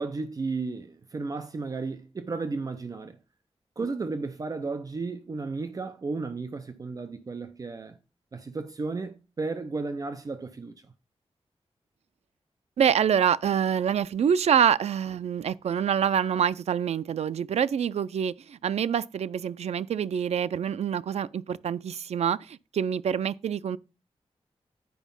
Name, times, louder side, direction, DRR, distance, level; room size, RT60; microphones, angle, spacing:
voice 1, 0.0-3.2 3.8-8.0 8.3-10.9, right 3 dB, 35° right, 0.6 m, -34 dB
voice 2, 12.8-23.8, right 8 dB, 80° right, 0.4 m, -26 dB
9.3 x 5.0 x 5.3 m
wide cardioid pair, 175°, 11 cm